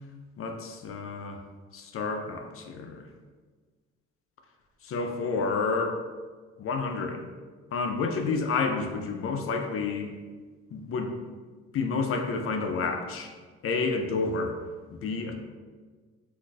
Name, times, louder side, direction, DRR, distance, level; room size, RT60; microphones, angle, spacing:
voice 1, 0.4-1.4 1.7-3.1 4.8-6.0 6.6-7.2 7.7-10.1 10.7-11.1 11.7-13.3 13.6-14.6 14.9-15.3, left 4 dB, 50° left, 4 dB, 0.4 m, -30 dB
2.5 x 2.3 x 3.8 m, 1.5 s
cardioid pair, 90°, 30 cm